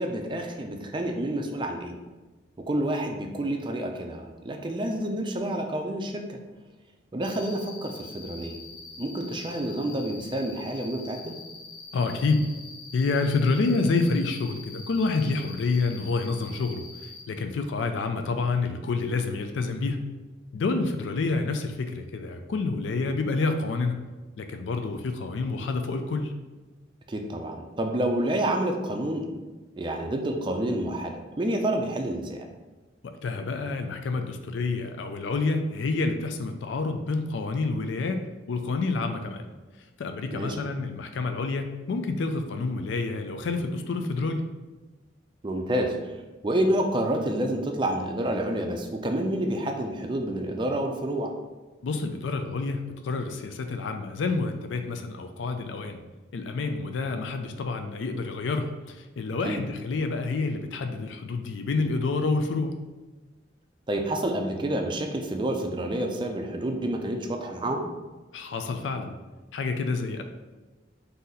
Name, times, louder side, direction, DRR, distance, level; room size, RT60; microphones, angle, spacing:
voice 1, 0.0-2.0 2.7-6.4 7.1-8.6 9.0-11.3 27.1-29.3 29.8-32.4 40.3-40.6 45.4-46.0 46.4-51.3 59.4-59.6 63.9-67.8, right 1 dB, 25° right, 3 dB, 0.4 m, -28 dB
Cricket, 7.2-17.2, left 3 dB, 90° left, 1.3 m, -45 dB
voice 2, 11.9-12.5 12.9-20.0 20.5-24.0 24.4-26.3 33.2-38.2 38.5-39.5 40.0-44.4 51.8-56.0 56.3-62.8 68.3-69.1 69.5-70.2, left 3 dB, 75° left, 6 dB, 0.4 m, -28 dB
4.0 x 2.7 x 3.9 m, 1.2 s
head